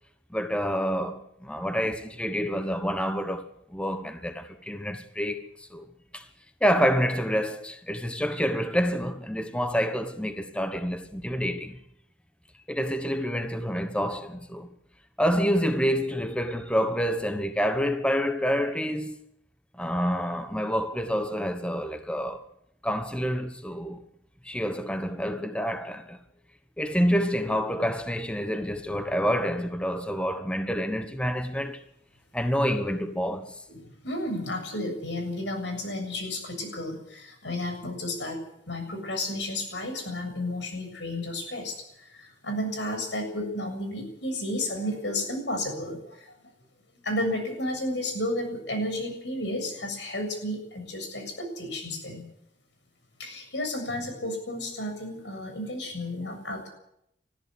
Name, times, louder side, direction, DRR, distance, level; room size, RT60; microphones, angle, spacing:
voice 1, 0.3-5.8 6.1-6.3 6.6-11.8 12.7-14.7 15.2-19.2 19.7-22.4 22.8-24.0 24.4-26.2 26.8-31.8 32.3-33.6, equal, 5° left, 1.1 m, -28 dB
voice 2, 33.7-46.4 47.0-52.2 53.2-56.7, left 1 dB, 85° left, 7.4 m, -32 dB
20.5 x 14.0 x 9.8 m
head